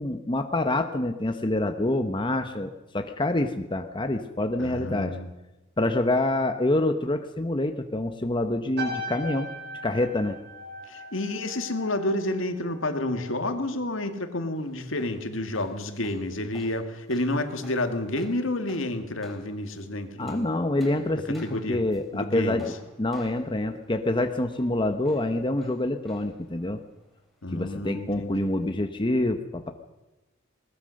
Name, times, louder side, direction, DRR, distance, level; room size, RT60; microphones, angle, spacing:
voice 1, 0.0-5.2 5.8-9.5 9.8-10.4 20.2-22.7 23.0-26.8 27.5-29.7, left 1 dB, 25° left, 7 dB, 1.0 m, -26 dB
voice 2, 4.6-5.3 10.9-20.5 21.1-21.8 22.1-22.6 27.4-28.5, left 1 dB, 65° left, 7 dB, 2.2 m, -30 dB
sound 1, 8.8-13.4 13.7-14.1, equal, 50° right, 4.3 m, -39 dB
sound 2, 14.6-28.8, equal, ahead, 4.0 m, -54 dB
21.0 x 19.5 x 6.5 m, 1.0 s
head